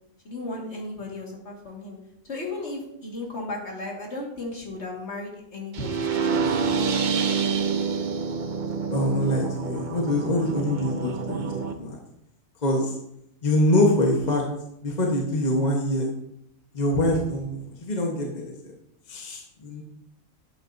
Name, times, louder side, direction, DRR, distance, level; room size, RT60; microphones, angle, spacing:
voice 1, 0.2-2.0 2.2-6.6, left 2 dB, 50° left, -1 dB, 2.2 m, -35 dB
sound 1, 5.7-11.7, right 5 dB, 50° right, 0.6 m, -27 dB
voice 2, 8.9-12.0 12.6-12.9 13.4-14.4 14.8-16.1 16.7-18.5 19.1-19.8, left 1 dB, 35° left, -1 dB, 1.2 m, -24 dB
10.5 x 8.7 x 2.7 m, 0.78 s
omnidirectional pair, 1.4 m